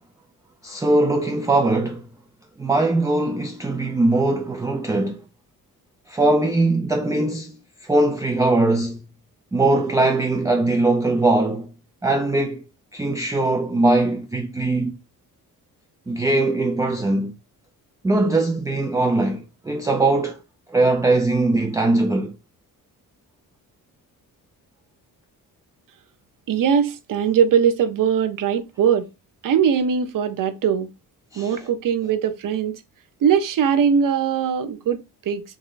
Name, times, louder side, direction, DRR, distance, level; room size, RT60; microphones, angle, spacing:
voice 1, 0.6-2.1 2.6-5.2 6.1-9.1 9.5-11.7 12.0-12.6 12.9-15.0 16.1-17.3 18.0-20.4 20.7-22.3 31.3-31.7, right 2 dB, 10° right, 0.3 m, -21 dB
voice 2, 26.5-29.1 29.4-30.9 31.4-32.7 33.2-35.4, right 7 dB, 65° right, 0.6 m, -20 dB
3.6 x 3.1 x 2.4 m
wide cardioid pair, 150°, 35 cm